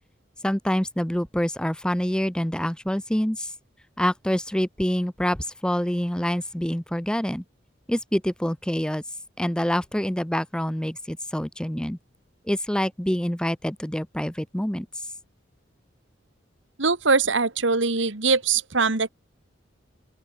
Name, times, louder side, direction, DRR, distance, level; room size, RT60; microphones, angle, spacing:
voice 1, 0.4-3.5 4.0-7.4 7.9-9.0 9.4-12.0 12.5-14.9, equal, 5° left, 0.7 m, -26 dB
voice 2, 16.8-19.1, right 4 dB, 75° right, 1.9 m, -22 dB
open air
head